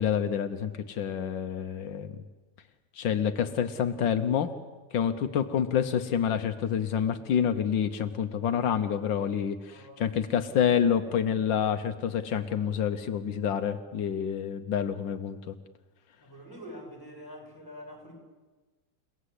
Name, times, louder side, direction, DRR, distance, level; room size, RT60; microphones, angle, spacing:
voice 1, 0.0-2.2 2.9-4.5 4.9-15.5, left 8 dB, 85° left, 8 dB, 1.7 m, -28 dB
voice 2, 9.7-10.1 16.2-18.1, equal, 10° left, 2 dB, 6.5 m, -45 dB
30.0 x 18.0 x 8.4 m, 1.2 s
omnidirectional pair, 2.0 m